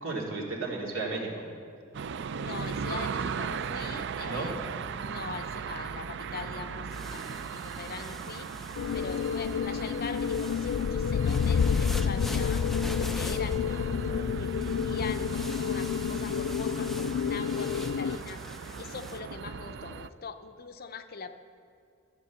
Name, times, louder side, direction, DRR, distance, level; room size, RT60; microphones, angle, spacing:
voice 1, 0.0-1.5 4.3-4.5 13.7-14.3, right 3 dB, 90° right, -2 dB, 2.6 m, -34 dB
sound 1, 1.9-20.1, right 6 dB, 65° right, 0.4 m, -38 dB
voice 2, 2.4-4.6 5.0-8.5 8.9-12.6 12.9-18.4 18.8-21.4, left 5 dB, 50° left, 9 dB, 0.7 m, -42 dB
sound 2, 6.9-19.2, equal, ahead, 0.6 m, -45 dB
sound 3, 8.8-18.2, left 7 dB, 85° left, 0.3 m, -29 dB
14.0 x 8.2 x 7.1 m, 2.4 s
head